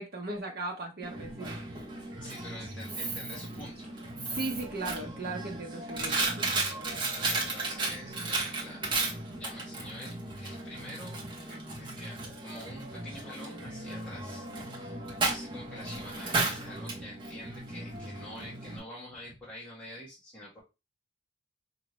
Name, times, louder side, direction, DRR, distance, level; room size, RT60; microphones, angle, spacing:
voice 1, 0.0-1.9 4.3-6.5, right 2 dB, 55° right, 1.0 m, -37 dB
Coin (dropping), 1.0-18.8, right 2 dB, 25° right, 0.9 m, -35 dB
voice 2, 2.2-3.9 7.3-8.9 9.3-11.2 11.5-20.6, left 1 dB, 5° left, 1.4 m, -47 dB
4.5 x 2.8 x 3.0 m
head